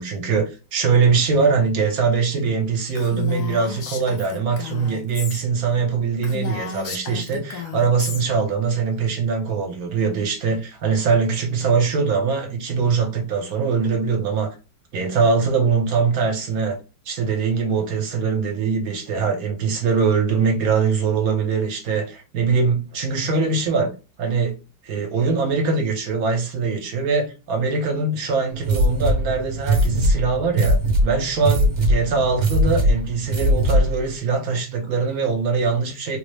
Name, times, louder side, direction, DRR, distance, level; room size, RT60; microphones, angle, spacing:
voice 1, 0.0-14.5 14.9-16.8 17.1-23.9 24.2-24.6 24.8-36.2, right 5 dB, 70° right, 1.2 m, -22 dB
Female speech woman speaking, 2.9-5.4 5.8-5.9 6.2-8.2, left 7 dB, 85° left, 1.3 m, -33 dB
sound 1, 28.6-34.0, equal, 50° right, 1.1 m, -20 dB
3.8 x 2.0 x 3.2 m
omnidirectional pair, 1.7 m